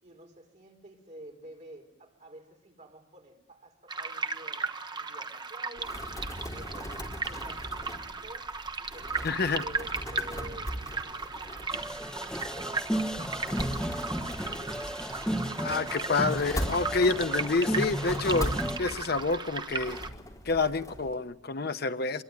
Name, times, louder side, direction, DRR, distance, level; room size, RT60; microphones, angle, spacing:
voice 1, 0.0-15.3 15.8-16.2, right 1 dB, 40° right, 2 dB, 5.0 m, -51 dB
sound 1, 3.9-20.1, right 4 dB, 25° right, 1.1 m, -36 dB
sound 2, 5.8-21.1, equal, 20° left, 3.7 m, -40 dB
voice 2, 9.2-9.6 15.6-20.0 20.4-22.2, left 3 dB, 55° left, 10 dB, 0.9 m, -28 dB
sound 3, 11.7-18.8, equal, 5° left, 1.3 m, -34 dB
25.5 x 22.5 x 9.4 m, 0.90 s
head